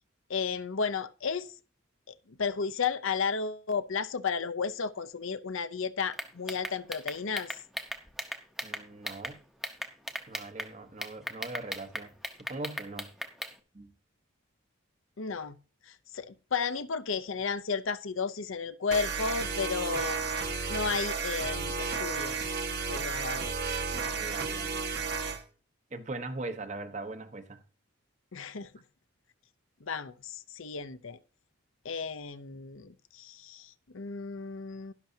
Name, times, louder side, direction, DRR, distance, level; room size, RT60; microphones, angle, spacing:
voice 1, 0.3-1.5 2.1-7.6 15.2-15.6 15.9-22.5 22.9-23.5 28.3-28.7 29.8-31.2 31.8-34.9, left 5 dB, 70° left, 0.7 m, -33 dB
sound 1, 6.1-9.3 9.6-10.7 11.0-13.5, equal, ahead, 0.9 m, -37 dB
voice 2, 8.6-9.4 10.3-12.1 12.4-13.1 13.7-13.9 23.9-24.8 25.9-27.6, right 2 dB, 35° right, 1.0 m, -40 dB
sound 2, 18.9-25.4, right 5 dB, 50° right, 1.4 m, -33 dB
12.0 x 11.5 x 2.8 m
head